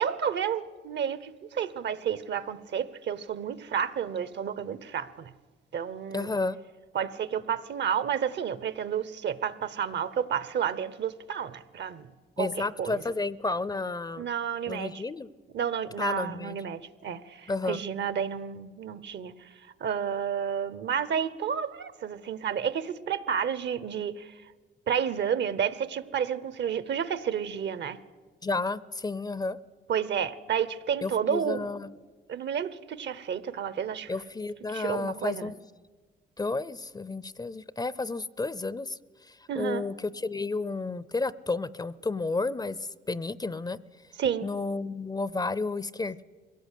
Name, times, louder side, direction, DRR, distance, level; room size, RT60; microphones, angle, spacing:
voice 1, 0.0-5.3 5.7-6.3 6.9-12.1 12.4-13.0 14.2-15.0 15.5-19.3 19.8-24.3 24.9-28.0 29.9-31.7 32.3-34.1 34.7-35.5 39.5-39.8 44.2-44.5, right 8 dB, 60° right, 16 dB, 0.9 m, -31 dB
voice 2, 6.1-6.6 12.4-14.3 14.7-15.3 16.0-16.6 17.5-17.8 28.4-29.6 31.0-31.9 34.1-35.5 36.4-39.0 39.3-42.8 43.1-43.8 44.4-46.2, left 3 dB, 20° left, 19 dB, 0.5 m, -31 dB
22.0 x 17.0 x 8.4 m, 1.4 s
cardioid pair, 90°, 20 cm